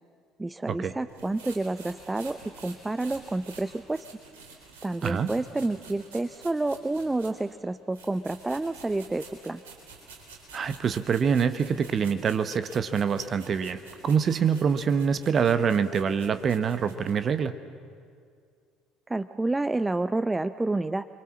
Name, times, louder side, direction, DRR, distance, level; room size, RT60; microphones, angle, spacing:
voice 1, 0.4-4.0 4.8-9.6 19.1-21.1, right 2 dB, 15° right, 14 dB, 0.6 m, -29 dB
sound 1, 1.1-7.5 7.9-17.2, right 4 dB, 70° right, 4.1 m, -50 dB
voice 2, 10.5-17.5, right 6 dB, 40° right, 12 dB, 1.0 m, -25 dB
28.5 x 23.5 x 7.3 m, 2.2 s
figure-of-eight pair, 55°, 0 cm